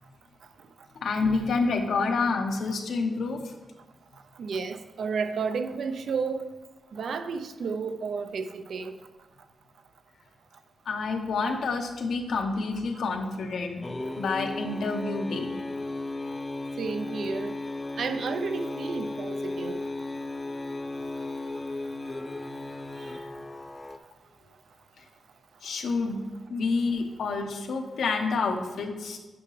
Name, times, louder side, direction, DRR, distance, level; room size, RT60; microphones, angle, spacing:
voice 1, 1.0-3.5 10.9-13.8 14.1-15.5 25.6-26.2 26.5-29.2, left 4 dB, 85° left, 1.0 m, -28 dB
voice 2, 4.4-6.5 6.9-9.0 16.8-17.5 18.0-19.8, right 5 dB, 65° right, 0.5 m, -32 dB
sound 1, 13.8-24.0, left 2 dB, 15° left, 0.3 m, -35 dB
9.5 x 5.9 x 3.2 m
wide cardioid pair, 160°, 0 cm